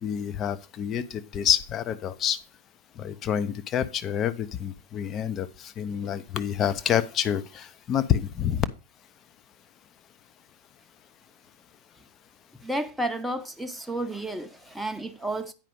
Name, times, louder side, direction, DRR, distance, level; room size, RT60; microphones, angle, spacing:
voice 1, 0.0-2.4 3.0-8.7, left 9 dB, 30° left, 0.7 m, -27 dB
voice 2, 12.6-15.5, right 1 dB, ahead, 0.8 m, -31 dB
9.0 x 5.0 x 5.3 m
figure-of-eight pair, 90°, 0 cm